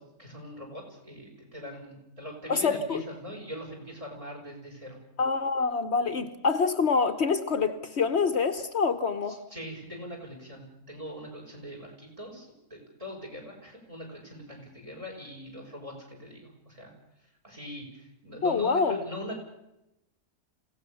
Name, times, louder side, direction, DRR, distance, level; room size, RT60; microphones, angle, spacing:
voice 1, 0.2-5.0 9.3-16.9 17.4-19.4, equal, 25° right, 6.7 m, -42 dB
voice 2, 2.5-3.0 5.2-9.4 18.4-19.0, left 5 dB, 60° left, 1.3 m, -26 dB
27.0 x 17.0 x 7.0 m
omnidirectional pair, 1.3 m